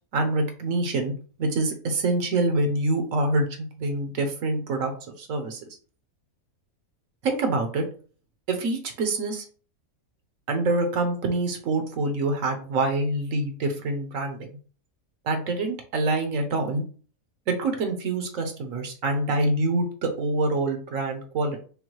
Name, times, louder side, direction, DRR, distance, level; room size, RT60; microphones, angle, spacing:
voice 1, 0.1-1.1 1.4-4.9 5.2-5.6 7.2-7.8 8.5-9.4 10.5-14.5 15.2-16.8 17.5-21.6, right 2 dB, 70° right, 5 dB, 1.2 m, -26 dB
5.4 x 2.2 x 3.0 m, 0.40 s
omnidirectional pair, 1.5 m